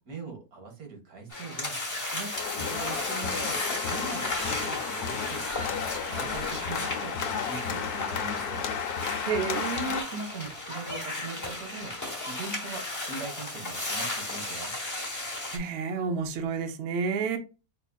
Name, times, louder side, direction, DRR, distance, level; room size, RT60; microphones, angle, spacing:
voice 1, 0.1-1.8 2.1-3.6 3.9-5.4 6.0-8.7 10.0-14.7, right 4 dB, 75° right, 1.6 m, -41 dB
sound 1, 1.3-15.6, left 2 dB, 15° left, 0.6 m, -35 dB
sound 2, 2.3-10.0, left 7 dB, 90° left, 1.1 m, -33 dB
voice 2, 9.3-10.0 15.5-17.4, right 5 dB, 60° right, 0.7 m, -30 dB
4.8 x 2.5 x 2.2 m
omnidirectional pair, 1.6 m